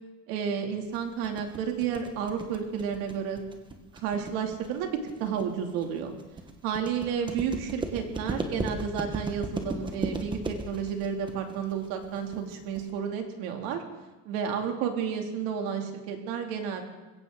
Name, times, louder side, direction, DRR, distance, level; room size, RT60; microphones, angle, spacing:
voice 1, 0.3-3.4 4.0-6.1 6.6-13.8 14.3-16.8, right 7 dB, 90° right, 3 dB, 2.7 m, -31 dB
sound 1, 0.9-12.9, right 2 dB, 15° right, 1.3 m, -36 dB
21.0 x 16.5 x 3.8 m, 1.1 s
cardioid pair, 175°, 35 cm